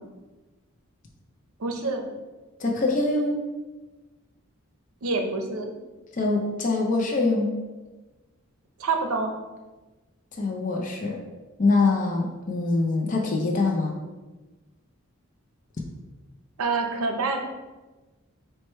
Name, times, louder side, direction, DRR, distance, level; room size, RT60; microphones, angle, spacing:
voice 1, 1.6-2.1 5.0-5.7 8.8-9.3 16.6-17.5, right 3 dB, 90° right, 4 dB, 0.6 m, -27 dB
voice 2, 2.6-3.4 6.1-7.6 10.4-11.2 11.6-14.0, left 3 dB, 35° left, 0 dB, 0.5 m, -24 dB
4.6 x 2.2 x 4.2 m, 1.2 s
head